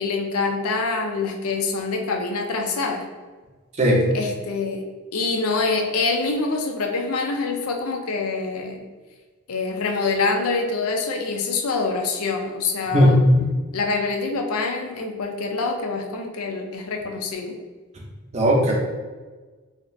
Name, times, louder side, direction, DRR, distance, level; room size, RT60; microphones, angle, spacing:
voice 1, 0.0-3.1 4.1-4.9 5.1-8.9 9.5-13.2 13.7-17.7, left 3 dB, 80° left, 3 dB, 0.4 m, -25 dB
voice 2, 12.9-13.4 18.3-18.7, equal, 30° right, -2 dB, 0.5 m, -16 dB
2.7 x 2.4 x 3.1 m, 1.3 s
head